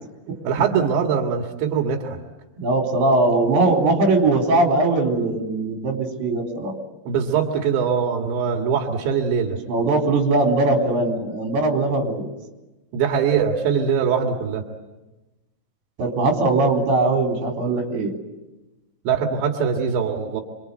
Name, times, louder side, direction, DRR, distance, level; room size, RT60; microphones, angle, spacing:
voice 1, 0.4-2.2 7.1-9.6 12.9-14.7 19.1-20.4, right 7 dB, 90° right, 2 dB, 4.3 m, -22 dB
voice 2, 2.6-6.7 9.7-12.3 16.0-18.1, right 2 dB, 65° right, 2 dB, 5.8 m, -20 dB
27.5 x 24.0 x 8.1 m, 1.1 s
omnidirectional pair, 5.0 m